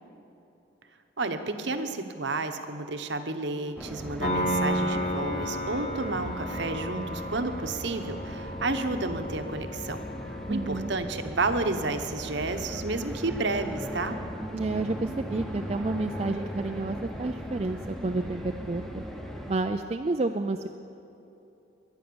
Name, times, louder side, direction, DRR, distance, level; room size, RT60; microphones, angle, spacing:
voice 1, 1.2-10.0 10.5-14.2, right 3 dB, 55° right, 8 dB, 1.0 m, -31 dB
sound 1, 3.8-19.6, equal, ahead, 0.9 m, -38 dB
Piano, 4.2-10.9, equal, 35° left, 1.8 m, -33 dB
voice 2, 10.5-10.9 14.5-19.0 19.5-20.7, right 3 dB, 30° right, 5 dB, 0.4 m, -30 dB
22.0 x 9.2 x 7.0 m, 2.9 s
head